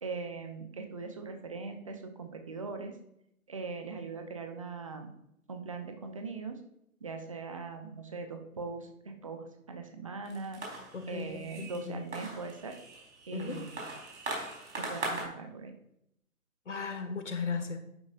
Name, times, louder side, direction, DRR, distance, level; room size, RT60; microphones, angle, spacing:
voice 1, 0.0-3.0 3.5-5.1 5.5-6.6 7.0-10.6 11.1-12.8 13.3-13.8 14.8-15.7, right 4 dB, 25° right, 6 dB, 0.8 m, -40 dB
sound 1, 10.2-15.2, right 2 dB, 50° right, 4.2 m, -40 dB
voice 2, 10.9-11.3 11.6-12.0 13.3-13.6 16.7-17.8, left 5 dB, 55° left, 6 dB, 1.7 m, -36 dB
11.0 x 10.0 x 2.5 m, 0.78 s
figure-of-eight pair, 150°, 44 cm